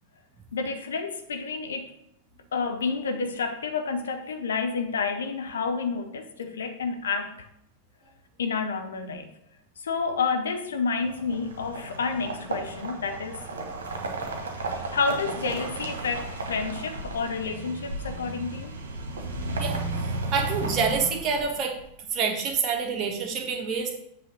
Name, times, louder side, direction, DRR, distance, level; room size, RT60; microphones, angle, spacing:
voice 1, 0.5-1.9 2.5-7.5 8.4-9.3 9.8-13.4 14.6-18.8, left 5 dB, 65° left, 6 dB, 0.8 m, -30 dB
sound 1, 11.0-21.8, right 2 dB, 65° right, 1.3 m, -34 dB
voice 2, 20.3-21.8 22.1-23.9, right 5 dB, 35° right, 3 dB, 1.3 m, -27 dB
7.7 x 3.4 x 6.1 m, 0.77 s
figure-of-eight pair, 90°, 0 cm